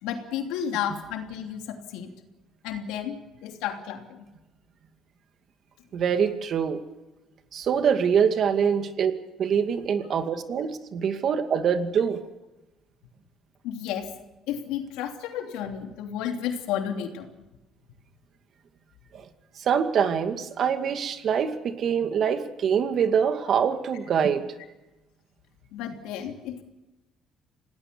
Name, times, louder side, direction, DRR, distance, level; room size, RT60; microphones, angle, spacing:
voice 1, 0.0-2.1 2.6-4.3 13.6-14.1 14.5-17.3 25.7-26.6, left 9 dB, 90° left, 4 dB, 3.0 m, -32 dB
voice 2, 5.9-6.8 7.5-9.1 9.4-12.2 19.1-19.2 19.6-24.4, right 7 dB, 55° right, 7 dB, 2.3 m, -24 dB
27.5 x 18.5 x 7.0 m, 1.0 s
cardioid pair, 100°, 0 cm